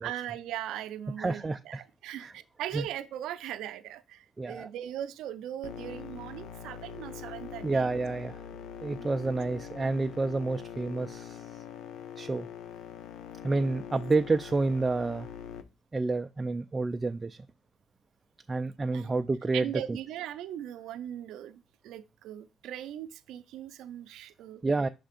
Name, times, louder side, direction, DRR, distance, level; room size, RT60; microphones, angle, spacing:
voice 1, 0.0-7.9 8.9-9.1 18.9-19.2 19.5-24.6, right 11 dB, 85° right, 0.5 m, -39 dB
voice 2, 1.2-1.8 2.2-2.3 2.7-2.8 4.4-4.7 7.6-8.5 8.8-11.6 12.2-12.5 13.4-15.3 15.9-17.5 18.5-20.0 24.6-24.9, right 3 dB, 25° right, 0.3 m, -29 dB
sound 1, 5.6-15.6, left 8 dB, 85° left, 0.6 m, -43 dB
5.7 x 3.3 x 5.1 m
cardioid pair, 90°, 0 cm